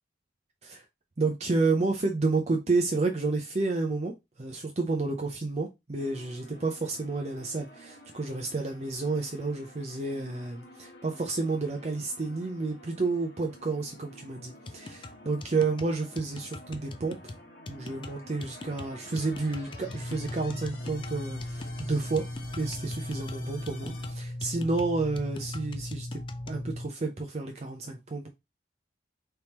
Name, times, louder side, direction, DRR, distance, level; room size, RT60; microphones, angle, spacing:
voice 1, 1.2-4.1 4.4-17.3 17.7-22.2 22.6-26.2 26.5-28.3, right 3 dB, 35° right, 0.6 m, -30 dB
sound 1, 6.0-24.1, left 1 dB, 55° left, 1.3 m, -50 dB
sound 2, 14.7-26.6, left 2 dB, 30° left, 0.4 m, -44 dB
sound 3, 19.8-26.9, left 1 dB, 75° left, 1.8 m, -38 dB
4.4 x 3.5 x 2.9 m
head